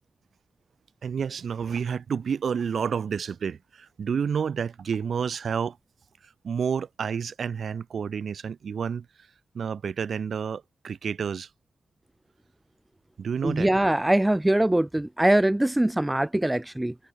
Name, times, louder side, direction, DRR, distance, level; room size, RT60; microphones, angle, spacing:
voice 1, 1.0-5.8 6.4-9.1 9.5-11.5 13.2-13.7, right 6 dB, 75° right, 3.9 m, -29 dB
voice 2, 13.4-16.9, right 1 dB, 10° right, 0.7 m, -22 dB
wide cardioid pair, 135°, 0 cm